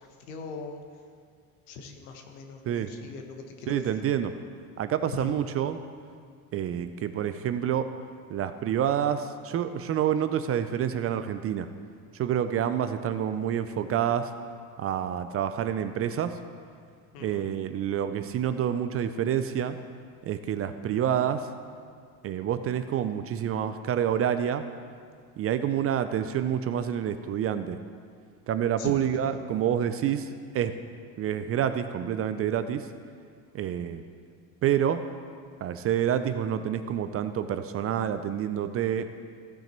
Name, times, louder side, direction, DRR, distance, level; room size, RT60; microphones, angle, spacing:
voice 1, 0.3-0.8 1.7-3.8 5.1-5.4 17.1-17.4 28.8-29.1, left 4 dB, 75° left, 4 dB, 1.5 m, -40 dB
voice 2, 3.7-4.3 4.8-5.8 6.5-7.9 8.3-11.7 12.1-14.3 14.8-16.3 17.2-19.8 20.2-21.5 22.2-24.6 25.4-27.8 28.5-30.3 30.5-30.7 31.2-32.9 33.5-34.0 34.6-35.0 35.6-39.1, right 9 dB, 35° right, 10 dB, 0.5 m, -28 dB
15.5 x 5.9 x 4.4 m, 2.1 s
hypercardioid pair, 95°, 44 cm